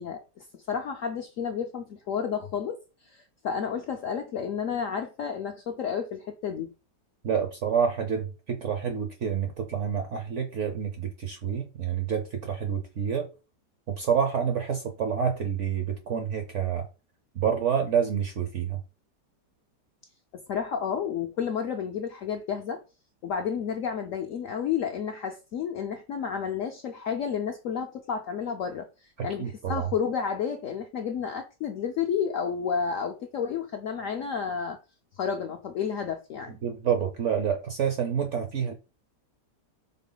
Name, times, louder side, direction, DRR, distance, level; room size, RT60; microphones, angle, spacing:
voice 1, 0.0-2.8 3.1-6.7 20.3-22.8 23.2-28.9 29.2-34.8 35.2-36.6, left 7 dB, 75° left, 0.7 m, -31 dB
voice 2, 7.2-13.3 13.9-16.9 17.4-18.8 29.2-29.9 36.6-38.7, right 7 dB, 65° right, 0.7 m, -28 dB
3.8 x 3.5 x 3.8 m
omnidirectional pair, 1.9 m